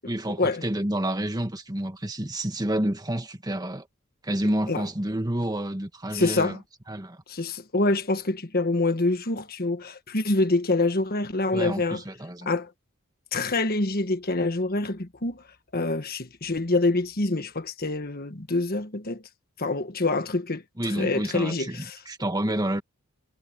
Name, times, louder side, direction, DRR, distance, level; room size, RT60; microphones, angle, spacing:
voice 1, 0.1-3.9 4.2-6.6 6.9-7.2 11.5-12.5 20.8-22.8, right 1 dB, 20° right, 1.8 m, -29 dB
voice 2, 6.1-6.6 7.3-12.0 12.4-12.7 13.3-15.4 15.7-19.2 19.6-22.0, left 2 dB, 45° left, 1.5 m, -26 dB
head